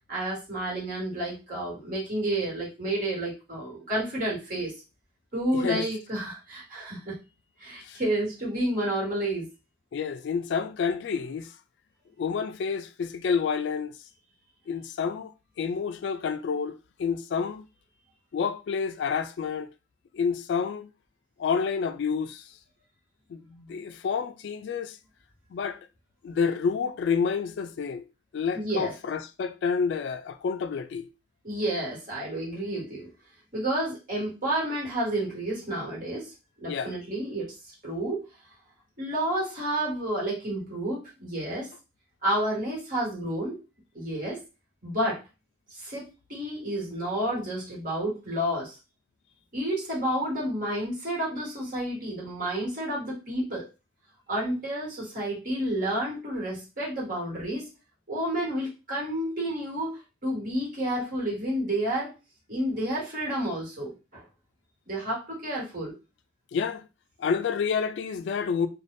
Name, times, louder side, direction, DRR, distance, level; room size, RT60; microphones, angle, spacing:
voice 1, 0.1-4.7 5.3-7.2 7.6-9.5 28.5-28.9 31.4-33.1 33.5-36.3 36.6-37.5 37.8-38.2 39.0-41.7 42.2-43.6 43.9-44.4 44.8-45.2 45.7-48.7 49.5-53.7 54.3-57.6 58.1-62.1 62.5-64.2 64.9-65.9, right 1 dB, 50° right, 1.4 m, -30 dB
voice 2, 5.5-5.9 7.8-8.0 9.9-11.5 12.2-13.9 14.7-17.6 18.3-19.7 20.1-20.9 21.4-22.4 23.3-25.0 25.5-25.8 26.2-28.0 28.3-31.1 36.7-36.9 66.5-66.9 67.2-68.7, left 6 dB, 65° left, 0.3 m, -29 dB
2.5 x 2.2 x 3.3 m
head